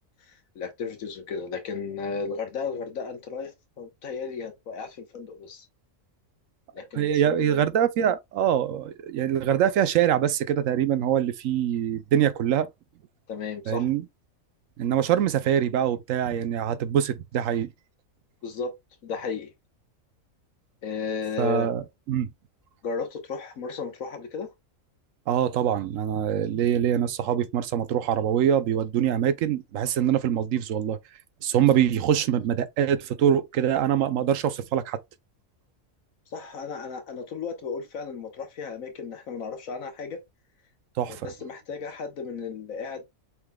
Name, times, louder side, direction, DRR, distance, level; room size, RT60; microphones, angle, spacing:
voice 1, 0.3-5.7 6.7-7.7 13.3-13.9 18.4-18.7 19.0-19.5 20.8-21.7 22.8-24.5 36.3-40.2 41.1-43.0, left 5 dB, 75° left, 1.5 m, -34 dB
voice 2, 6.9-12.7 13.7-14.0 14.8-17.7 21.4-22.3 25.3-31.0 31.4-35.0 41.0-41.2, right 9 dB, 70° right, 1.0 m, -24 dB
5.8 x 3.7 x 2.2 m
omnidirectional pair, 1.4 m